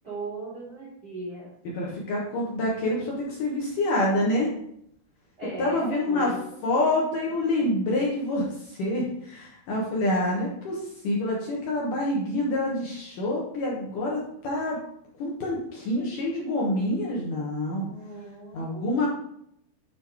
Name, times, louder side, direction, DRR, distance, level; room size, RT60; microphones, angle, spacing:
voice 1, 0.0-1.5 5.4-6.9 17.8-19.0, right 2 dB, 60° right, -6 dB, 1.0 m, -39 dB
voice 2, 1.6-4.5 5.6-6.3 6.6-10.8 11.0-14.8 15.2-17.8 18.5-19.1, left 1 dB, 65° left, -4 dB, 2.2 m, -27 dB
9.2 x 3.4 x 4.7 m, 0.73 s
omnidirectional pair, 5.2 m